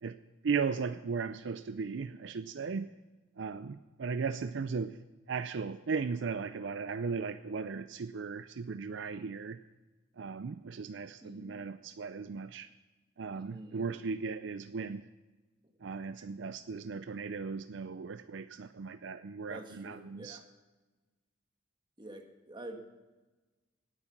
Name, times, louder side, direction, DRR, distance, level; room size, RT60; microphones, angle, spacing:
voice 1, 0.0-2.9 3.4-5.0 5.3-9.6 10.2-12.7 13.2-15.1 15.8-20.4, right 5 dB, 65° right, 12 dB, 0.4 m, -37 dB
voice 2, 11.2-11.6 13.3-14.0 16.2-16.3 19.4-20.4 22.0-22.8, right 1 dB, 25° right, 4 dB, 1.6 m, -47 dB
18.0 x 8.5 x 5.9 m, 1.2 s
head